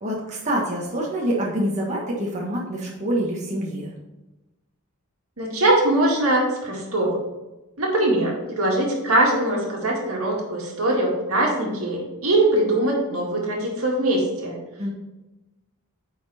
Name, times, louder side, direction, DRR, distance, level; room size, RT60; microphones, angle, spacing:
voice 1, 0.0-3.9 14.8-14.9, right 1 dB, 35° right, -3 dB, 1.3 m, -26 dB
voice 2, 5.4-7.2 7.8-14.6, right 1 dB, 70° right, -1 dB, 2.1 m, -22 dB
9.4 x 4.4 x 4.2 m, 1.0 s
head